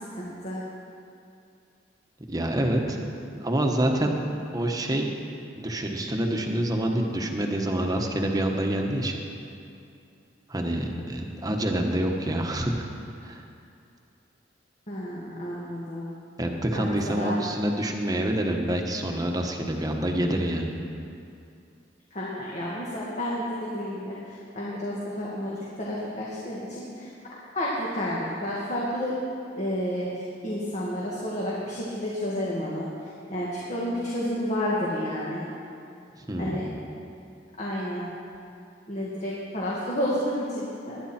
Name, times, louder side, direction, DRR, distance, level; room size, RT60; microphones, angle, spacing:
voice 1, 0.2-0.6 14.9-16.1 16.7-17.4 22.1-27.1 27.6-29.2 29.6-30.1 30.4-32.9 33.3-35.4 36.4-36.6 37.6-38.0 38.9-41.0, equal, 40° left, -6 dB, 1.9 m, -30 dB
voice 2, 2.3-4.2 4.5-5.1 5.5-9.2 10.5-12.9 13.2-13.4 16.4-20.7 36.2-36.7, right 1 dB, 20° right, 2 dB, 1.3 m, -27 dB
20.0 x 11.0 x 4.4 m, 2.5 s
head